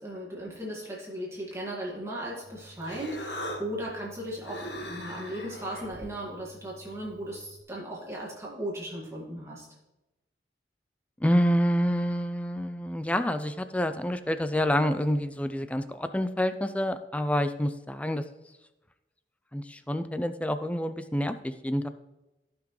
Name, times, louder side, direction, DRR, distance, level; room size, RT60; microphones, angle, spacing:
voice 1, 0.0-9.7, right 1 dB, 15° right, -4 dB, 1.9 m, -37 dB
Human voice, 2.4-7.6, equal, 80° left, 1.6 m, -41 dB
voice 2, 11.2-18.2 19.5-21.9, equal, 10° left, 10 dB, 0.4 m, -27 dB
15.0 x 6.0 x 3.2 m, 1.0 s
head